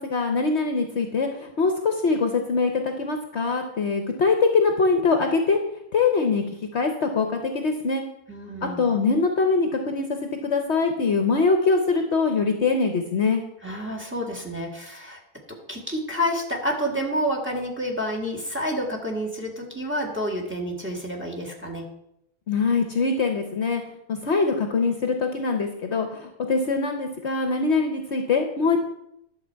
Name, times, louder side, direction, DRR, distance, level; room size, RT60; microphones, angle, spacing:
voice 1, 0.0-5.6 5.9-6.4 6.7-8.1 8.6-13.4 22.5-23.8 24.1-28.8, left 4 dB, 55° left, 4 dB, 1.1 m, -23 dB
voice 2, 8.3-8.9 13.6-15.2 15.7-21.8, equal, 10° right, 1 dB, 1.7 m, -29 dB
11.0 x 6.9 x 4.6 m, 0.79 s
omnidirectional pair, 1.5 m